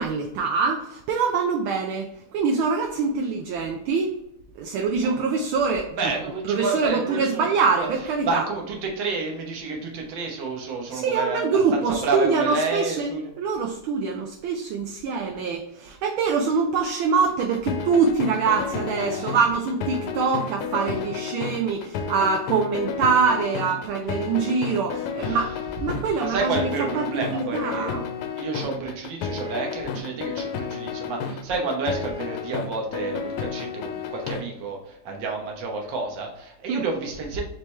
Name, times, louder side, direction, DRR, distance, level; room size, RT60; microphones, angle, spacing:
voice 1, 0.0-4.1 4.6-6.1 6.4-8.5 10.9-13.1 13.4-25.5 25.8-26.7 26.9-28.0 36.7-36.8, right 5 dB, 75° right, 2 dB, 1.3 m, -24 dB
voice 2, 5.9-7.5 7.7-7.9 8.2-13.3 19.0-19.3 25.2-25.5 26.2-28.0 28.4-37.4, right 3 dB, 60° right, 1 dB, 1.5 m, -30 dB
sound 1, 17.3-34.4, left 6 dB, 85° left, 1.5 m, -31 dB
4.4 x 3.3 x 3.1 m, 0.81 s
omnidirectional pair, 2.4 m